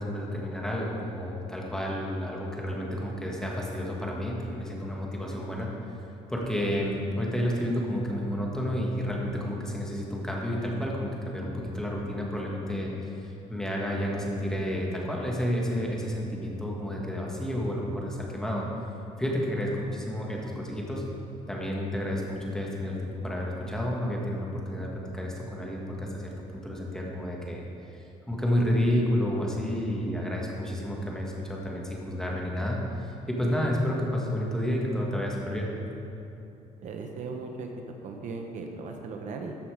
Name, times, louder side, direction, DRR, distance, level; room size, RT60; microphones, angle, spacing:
voice 1, 0.0-5.7 6.3-12.9 13.2-18.6 19.2-21.0 21.5-27.7 28.0-35.7, equal, 5° left, -3 dB, 1.5 m, -30 dB
voice 2, 36.8-37.7 38.0-39.5, right 4 dB, 60° right, 3 dB, 0.9 m, -37 dB
13.5 x 5.6 x 4.8 m, 2.8 s
cardioid pair, 125°, 14 cm